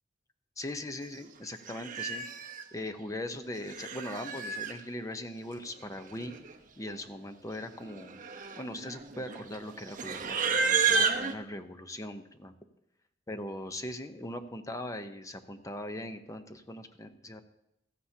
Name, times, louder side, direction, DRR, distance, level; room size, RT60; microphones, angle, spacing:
voice 1, 0.6-2.2 2.7-6.4 6.8-8.2 8.6-12.5 13.3-17.4, left 1 dB, 20° left, 8 dB, 0.8 m, -40 dB
Livestock farm animals working animals, 1.1-1.3 1.7-2.6 3.5-4.8 5.8-5.9 6.1-6.5 6.8-7.1 7.7-11.3, right 5 dB, 50° right, 0.9 m, -31 dB
15.5 x 13.5 x 2.8 m, 0.84 s
head